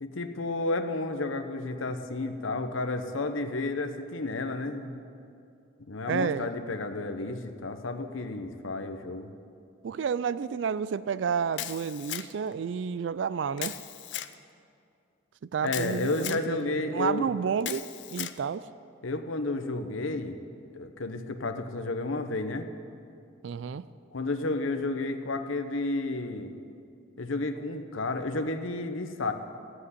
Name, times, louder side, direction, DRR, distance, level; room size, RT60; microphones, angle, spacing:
voice 1, 0.0-5.0 5.9-9.3 15.6-17.3 19.0-20.4 20.7-22.7 24.1-26.5 27.2-29.3, left 2 dB, 85° left, 6 dB, 0.9 m, -31 dB
voice 2, 6.0-6.5 9.8-13.8 15.4-18.7 23.4-23.9, right 6 dB, 70° right, 17 dB, 0.3 m, -31 dB
Camera, 11.6-12.5 13.6-14.3 15.7-16.4 17.6-18.4, left 13 dB, 65° left, 0.5 m, -37 dB
14.5 x 7.8 x 9.7 m, 2.5 s
head